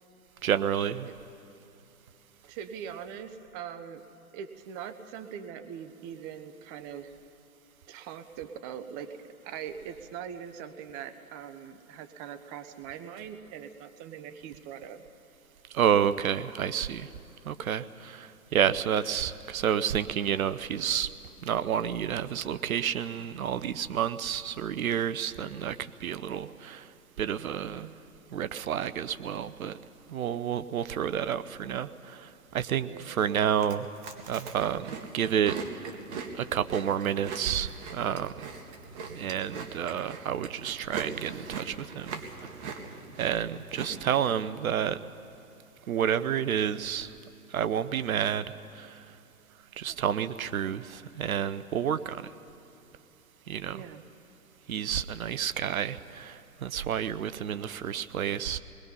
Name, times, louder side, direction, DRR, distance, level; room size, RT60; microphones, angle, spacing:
voice 1, 0.4-1.1 15.7-17.1 17.4-21.1 21.4-26.9 27.2-27.9 28.3-29.8 30.1-33.9 34.3-35.9 36.3-38.5 39.1-42.2 43.2-45.0 45.9-47.1 47.5-49.0 49.8-52.3 53.5-53.8 54.7-58.6, right 9 dB, 65° right, 13 dB, 0.8 m, -30 dB
voice 2, 2.5-4.0 4.3-7.1 7.9-15.0 18.5-18.8 32.9-33.2 53.7-54.0, right 8 dB, 20° right, 10 dB, 0.7 m, -42 dB
Chewing mastication, 33.5-44.3, right 5 dB, 45° right, 2.0 m, -41 dB
27.5 x 20.5 x 5.5 m, 2.8 s
hypercardioid pair, 125°, 46 cm